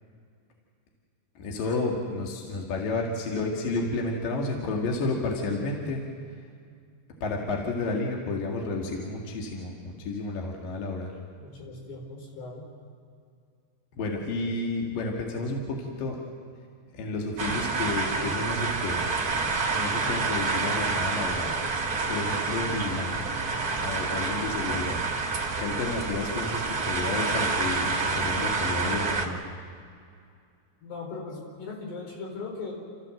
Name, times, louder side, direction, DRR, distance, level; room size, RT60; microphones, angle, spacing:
voice 1, 1.4-6.0 7.2-11.1 14.0-16.2 16.9-19.0 19.7-21.5 22.1-23.3 23.8-25.0 25.6-29.4, left 2 dB, 60° left, -1 dB, 3.5 m, -31 dB
voice 2, 11.4-12.7 30.8-32.7, left 3 dB, 75° left, -1 dB, 6.8 m, -38 dB
sound 1, 17.4-29.3, right 4 dB, 30° right, 1.8 m, -28 dB
29.0 x 15.0 x 7.7 m, 2.3 s
omnidirectional pair, 4.8 m